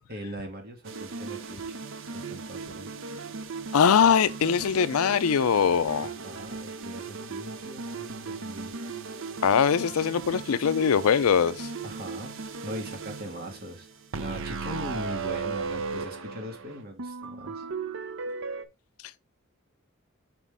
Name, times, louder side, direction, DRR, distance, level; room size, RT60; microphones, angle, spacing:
voice 1, 0.1-1.8 2.1-2.9 6.0-8.7 11.8-13.9 14.2-17.6, equal, 45° right, 1.7 m, -40 dB
sound 1, 0.8-18.6, right 4 dB, 65° right, 0.7 m, -37 dB
voice 2, 3.7-6.1 9.4-11.7, left 7 dB, 85° left, 0.5 m, -22 dB
5.7 x 5.1 x 3.5 m
head